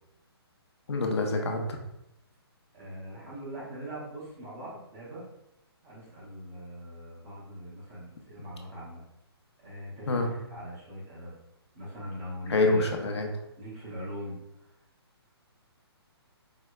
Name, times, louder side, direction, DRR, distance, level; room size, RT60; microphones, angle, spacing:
voice 1, 0.9-1.8 10.1-10.3 12.5-13.3, left 2 dB, 85° left, 2 dB, 0.6 m, -26 dB
voice 2, 2.7-5.3 5.8-9.0 9.6-11.3 11.7-12.9 13.6-14.4, equal, 15° right, -6 dB, 0.7 m, -41 dB
4.6 x 2.1 x 2.2 m, 0.85 s
hypercardioid pair, 165°, 14 cm